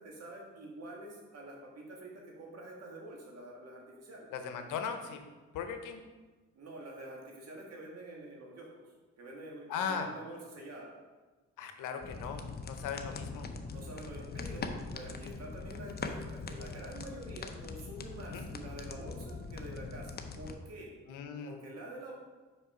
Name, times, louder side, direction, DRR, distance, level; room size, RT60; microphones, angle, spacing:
voice 1, 0.0-4.3 6.5-8.7 9.2-10.9 13.7-20.9 21.4-22.2, right 1 dB, 55° right, -1 dB, 1.9 m, -47 dB
voice 2, 4.3-5.2 5.5-6.0 9.7-10.1 11.6-13.5 18.3-18.4 21.1-21.5, left 6 dB, 85° left, 6 dB, 0.8 m, -38 dB
sound 1, 12.0-20.6, left 4 dB, 30° left, 0.6 m, -42 dB
5.6 x 4.7 x 4.9 m, 1.3 s
cardioid pair, 90°, 30 cm